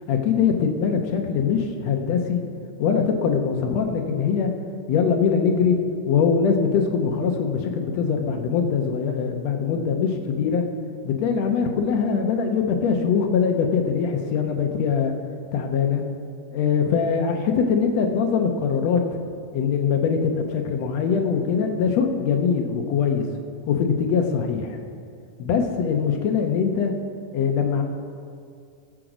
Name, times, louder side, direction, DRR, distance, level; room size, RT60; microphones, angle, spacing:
voice 1, 0.1-2.4 2.8-4.5 4.9-5.8 6.1-10.6 11.0-15.1 15.5-16.0 16.5-19.0 19.5-23.3 23.7-24.8 25.4-26.9 27.3-27.8, left 6 dB, 65° left, 4 dB, 1.8 m, -22 dB
19.5 x 7.7 x 5.0 m, 2.4 s
omnidirectional pair, 4.1 m